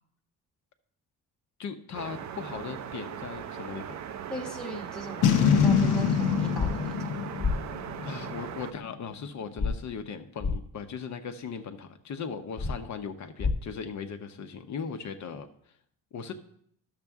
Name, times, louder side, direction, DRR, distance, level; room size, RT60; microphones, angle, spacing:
voice 1, 1.6-3.9 8.0-15.5 16.1-16.3, left 6 dB, 50° left, 7 dB, 0.8 m, -38 dB
sound 1, 1.9-8.7, right 9 dB, 50° right, 0.5 m, -39 dB
voice 2, 4.3-7.1, equal, ahead, -1 dB, 1.0 m, -38 dB
Boom, 5.2-8.6, left 7 dB, 80° left, 0.8 m, -24 dB
sound 2, 6.6-6.7 7.4-7.5 9.6-9.7 10.4-10.5 12.6-12.7 13.4-13.5, left 4 dB, 30° left, 1.2 m, -27 dB
12.0 x 6.7 x 3.5 m, 0.69 s
cardioid pair, 120°, 37 cm